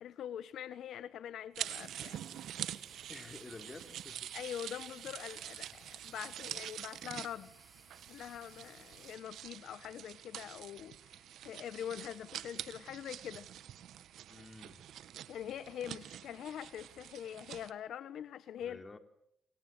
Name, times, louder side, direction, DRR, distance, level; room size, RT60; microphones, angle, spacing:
voice 1, 0.0-2.2 4.3-7.5 8.1-13.5 15.3-18.8, left 10 dB, 70° left, 14 dB, 1.1 m, -44 dB
sound 1, 1.6-9.2, right 1 dB, 10° right, 5.7 m, -63 dB
sound 2, 1.6-17.7, right 11 dB, 75° right, 1.7 m, -46 dB
voice 2, 3.1-4.3 14.3-14.9 18.6-19.0, left 3 dB, 25° left, 7 dB, 3.9 m, -51 dB
29.0 x 25.0 x 8.0 m, 0.76 s
cardioid pair, 90°, 0 cm